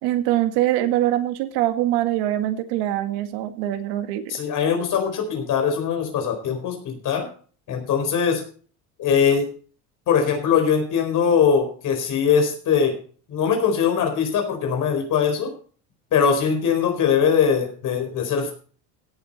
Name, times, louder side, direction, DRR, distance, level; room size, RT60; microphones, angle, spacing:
voice 1, 0.0-4.3, right 13 dB, 85° right, 9 dB, 2.0 m, -23 dB
voice 2, 4.3-7.3 7.7-8.4 9.0-9.5 10.1-13.0 13.3-15.5 16.1-18.5, left 7 dB, 50° left, 3 dB, 4.5 m, -21 dB
17.0 x 8.0 x 4.2 m, 0.41 s
cardioid pair, 135°, 39 cm